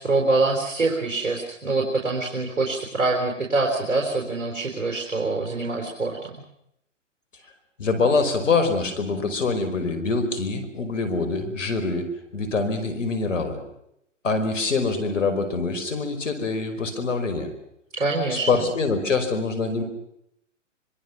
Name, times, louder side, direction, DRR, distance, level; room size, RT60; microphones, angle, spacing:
voice 1, 0.0-6.3 17.9-18.6, right 3 dB, 80° right, 1 dB, 4.3 m, -25 dB
voice 2, 7.8-13.6 14.2-17.5 18.3-19.8, left 4 dB, 75° left, 8 dB, 5.1 m, -24 dB
25.5 x 23.5 x 6.1 m, 0.78 s
hypercardioid pair, 130°, 38 cm